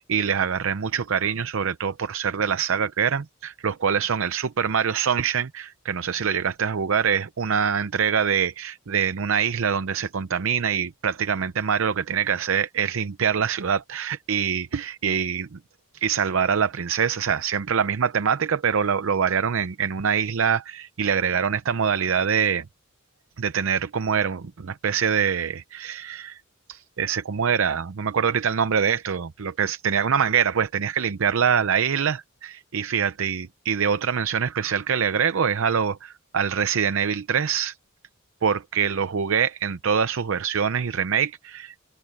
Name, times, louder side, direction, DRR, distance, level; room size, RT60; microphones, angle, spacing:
voice 1, 0.0-15.6 15.9-22.6 23.4-26.4 26.7-32.2 32.4-37.8 38.4-41.8, right 7 dB, 65° right, 0.6 m, -24 dB
head